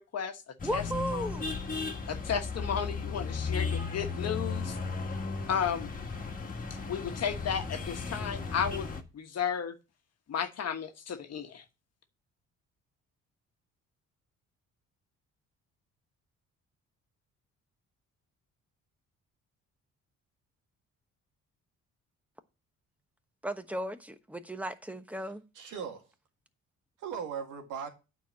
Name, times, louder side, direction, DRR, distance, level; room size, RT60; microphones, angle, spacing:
voice 1, 0.0-1.4 2.1-4.8 5.1-5.2 5.5-5.9 6.9-8.9 9.1-9.7 10.3-11.6, left 7 dB, 55° left, 1.3 m, -34 dB
sound 1, 0.6-9.0, left 4 dB, 30° left, 1.7 m, -35 dB
voice 2, 0.6-1.5 23.4-25.4, right 1 dB, 5° right, 1.0 m, -35 dB
voice 3, 25.2-26.1 27.0-27.9, right 7 dB, 85° right, 1.9 m, -39 dB
9.1 x 4.6 x 7.3 m
cardioid pair, 90°, 30 cm